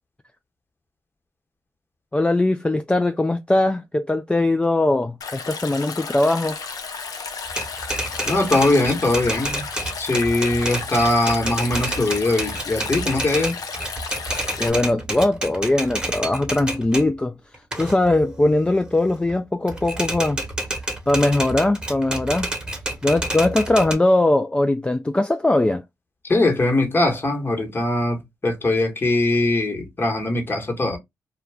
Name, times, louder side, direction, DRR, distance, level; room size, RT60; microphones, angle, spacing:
voice 1, 2.1-6.6 14.6-17.4 17.8-20.4 20.7-22.5 23.0-25.8, left 2 dB, 15° left, 0.3 m, -20 dB
Stream, 5.2-14.7, left 5 dB, 65° left, 0.6 m, -33 dB
Typewriter, 7.5-17.1 17.5-19.3 19.7-23.9, right 1 dB, 10° right, 1.2 m, -29 dB
voice 2, 8.3-9.7 10.0-13.6 26.2-31.0, left 2 dB, 35° left, 1.3 m, -21 dB
2.3 x 2.2 x 3.4 m
supercardioid pair, 55°, 7 cm